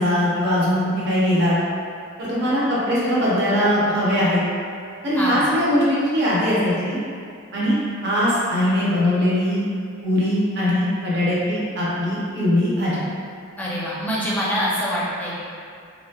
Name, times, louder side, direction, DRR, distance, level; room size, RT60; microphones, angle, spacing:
voice 1, 0.0-1.6 2.2-4.4 5.0-7.0 7.5-7.8 8.0-9.6 10.0-13.0, equal, 55° right, -8 dB, 0.8 m, -20 dB
voice 2, 5.2-5.5 13.6-15.3, equal, 10° left, -7 dB, 0.5 m, -24 dB
3.1 x 3.1 x 2.3 m, 2.4 s
head